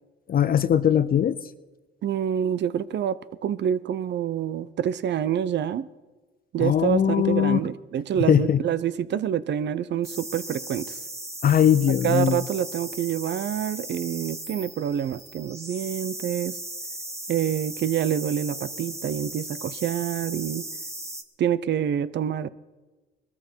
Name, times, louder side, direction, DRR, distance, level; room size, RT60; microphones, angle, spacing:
voice 1, 0.3-1.4 6.6-7.6 8.3-8.6 11.4-12.4, left 9 dB, 50° left, 0.6 m, -20 dB
voice 2, 2.0-5.9 6.5-11.0 12.0-16.6 17.3-20.6 21.4-22.5, right 9 dB, 60° right, 0.8 m, -27 dB
sound 1, 10.0-21.2, right 1 dB, 15° right, 1.5 m, -37 dB
21.0 x 13.5 x 4.6 m
cardioid pair, 90°, 20 cm